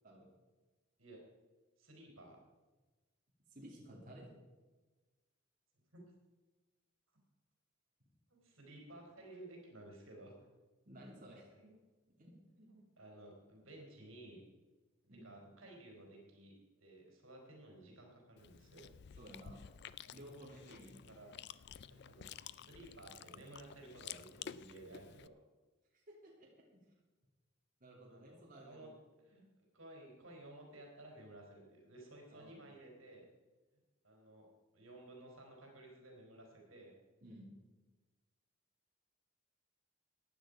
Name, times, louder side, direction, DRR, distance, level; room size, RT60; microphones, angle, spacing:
voice 1, 1.8-2.4 5.9-6.1 8.3-10.5 11.5-11.8 12.7-14.4 15.2-16.5 16.8-18.9 21.1-21.3 21.9-25.3 28.1-28.4 28.6-28.9 29.3-29.5 29.7-33.3 34.0-36.9, right 1 dB, 80° right, 0 dB, 4.1 m, -55 dB
voice 2, 3.5-4.3 10.8-11.5 12.2-12.7 15.1-15.3 19.2-19.6 20.1-21.2 25.9-26.5 27.8-28.9 32.3-32.7 37.2-37.5, right 1 dB, 40° right, -4 dB, 2.9 m, -55 dB
Chewing mastication, 18.4-25.3, left 9 dB, 55° left, 0.4 m, -52 dB
15.5 x 9.9 x 5.1 m, 1.2 s
head